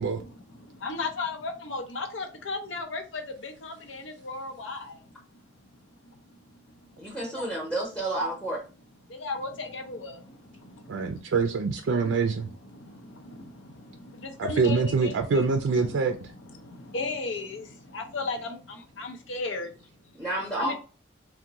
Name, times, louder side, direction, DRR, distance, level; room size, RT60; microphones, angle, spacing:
voice 1, 0.2-5.1 6.0-6.2 6.7-7.0 7.4-7.5 9.1-11.2 12.0-12.2 12.5-20.1 20.6-20.7, left 3 dB, 90° left, 0.6 m, -36 dB
voice 2, 7.0-8.6 20.2-20.7, right 1 dB, 5° left, 0.7 m, -30 dB
voice 3, 10.9-12.5 14.4-16.2, right 4 dB, 85° right, 0.4 m, -25 dB
3.5 x 2.1 x 2.8 m
head